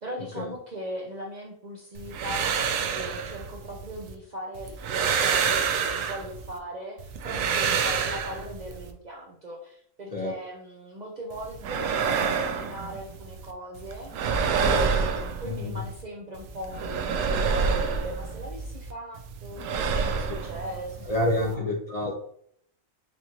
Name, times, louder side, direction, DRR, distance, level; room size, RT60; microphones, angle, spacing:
voice 1, 0.0-21.6, equal, 50° right, -1 dB, 0.5 m, -39 dB
sound 1, 2.0-4.1 4.6-6.6 7.0-8.9 11.3-13.5 13.8-16.0 16.3-18.9 19.2-21.5, right 6 dB, 85° right, 1.0 m, -28 dB
voice 2, 15.5-15.8 21.1-22.1, left 1 dB, 45° left, -1 dB, 0.5 m, -28 dB
5.0 x 2.6 x 2.9 m, 0.67 s
omnidirectional pair, 1.3 m